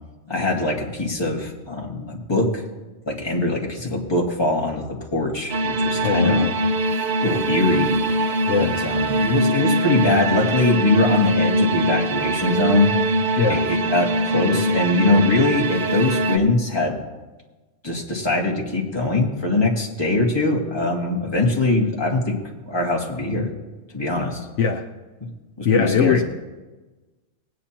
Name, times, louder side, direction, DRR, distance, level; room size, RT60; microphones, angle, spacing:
voice 1, 0.3-2.6 3.1-6.4 6.9-7.9 8.6-12.9 13.5-17.0 17.8-22.4 22.7-23.5 23.9-24.5 25.6-26.2, left 2 dB, 20° left, -1 dB, 1.9 m, -22 dB
sound 1, 5.5-16.4, right 1 dB, 50° right, 0.7 m, -22 dB
voice 2, 6.0-6.5 8.5-8.7 13.4-13.6 24.6-24.8 25.6-26.2, left 6 dB, 70° left, 4 dB, 1.1 m, -20 dB
20.5 x 9.4 x 2.9 m, 1.2 s
omnidirectional pair, 1.3 m